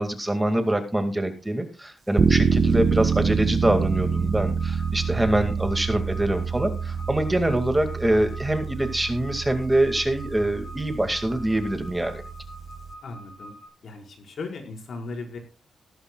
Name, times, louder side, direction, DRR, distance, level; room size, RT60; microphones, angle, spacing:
voice 1, 0.0-12.2, right 1 dB, 10° right, 7 dB, 2.2 m, -24 dB
sound 1, 2.2-12.9, right 6 dB, 50° right, 1.2 m, -27 dB
sound 2, 3.6-13.7, equal, 30° left, 4.9 m, -46 dB
voice 2, 13.0-13.5 13.8-15.4, left 3 dB, 65° left, 2 dB, 5.1 m, -37 dB
17.0 x 14.0 x 2.4 m, 0.31 s
cardioid pair, 105°, 0 cm